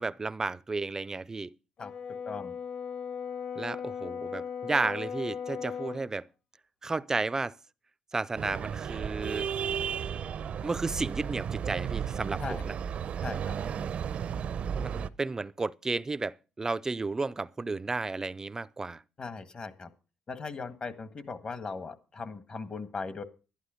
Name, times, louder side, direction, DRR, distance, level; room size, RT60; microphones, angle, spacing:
voice 1, 0.0-1.5 3.6-6.3 6.8-7.5 8.1-9.5 10.6-12.8 14.8-19.0, right 3 dB, 20° right, 0.5 m, -33 dB
Brass instrument, 1.8-6.1, left 7 dB, 55° left, 2.5 m, -37 dB
voice 2, 2.3-2.6 12.4-12.6 13.2-13.6 19.2-19.9 20.3-23.2, left 4 dB, 40° left, 1.6 m, -38 dB
sound 1, 8.4-15.1, right 8 dB, 55° right, 0.7 m, -34 dB
11.5 x 11.5 x 5.1 m
cardioid pair, 95°, 3 cm